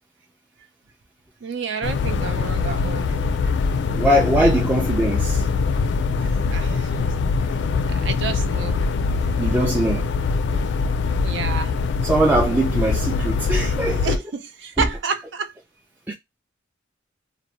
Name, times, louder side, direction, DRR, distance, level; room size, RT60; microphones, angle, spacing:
voice 1, 1.4-3.2 6.2-7.1 7.9-8.8 11.2-11.7 13.2-13.3 13.9-15.5, right 5 dB, 70° right, 0.5 m, -30 dB
sound 1, 1.8-14.2, left 4 dB, 65° left, 0.3 m, -23 dB
voice 2, 4.0-5.4 9.4-10.1 12.0-14.1 16.1-16.2, right 1 dB, 10° right, 0.3 m, -21 dB
2.5 x 2.0 x 3.0 m
head